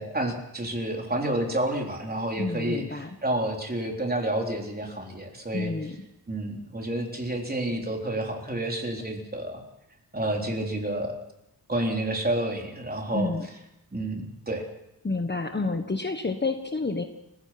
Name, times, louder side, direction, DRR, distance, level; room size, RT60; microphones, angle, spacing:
voice 1, 0.0-5.7 6.3-9.6 10.1-11.1 11.7-13.3 13.9-14.6, right 1 dB, 25° right, 1 dB, 3.9 m, -29 dB
voice 2, 2.4-3.1 5.5-6.0 13.1-13.5 15.0-17.0, left 3 dB, 25° left, 6 dB, 1.4 m, -29 dB
29.0 x 16.5 x 6.0 m, 0.86 s
wide cardioid pair, 125°, 38 cm